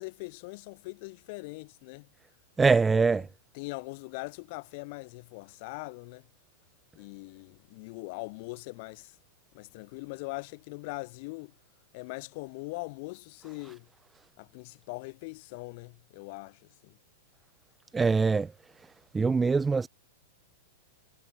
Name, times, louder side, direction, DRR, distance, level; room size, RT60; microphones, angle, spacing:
voice 1, 0.0-2.1 2.9-3.0 3.5-6.2 7.0-9.1 9.5-11.5 11.9-13.9 14.4-17.0, left 27 dB, 55° left, 2.3 m, -41 dB
voice 2, 2.6-3.3 17.9-18.5 18.8-18.9 19.1-19.9, right 4 dB, 10° right, 0.4 m, -23 dB
hypercardioid pair, 130°, 0 cm